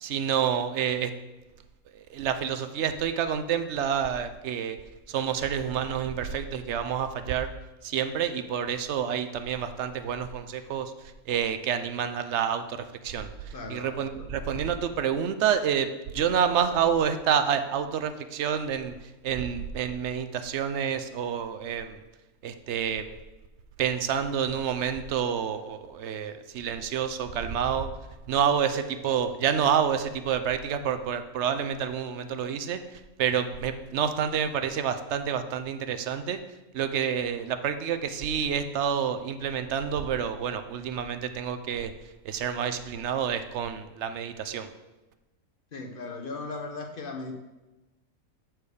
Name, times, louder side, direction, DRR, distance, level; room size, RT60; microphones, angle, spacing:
voice 1, 0.0-1.1 2.1-4.8 5.1-7.5 7.8-10.9 11.3-12.8 13.0-15.9 16.1-18.9 19.2-22.0 22.4-23.0 23.8-27.9 28.3-32.8 33.2-36.4 36.7-41.9 42.3-44.7, right 8 dB, 65° right, 9 dB, 0.8 m, -28 dB
voice 2, 13.5-14.3 45.7-47.3, left 3 dB, 45° left, 4 dB, 0.9 m, -37 dB
8.5 x 4.6 x 4.9 m, 1.1 s
omnidirectional pair, 1.4 m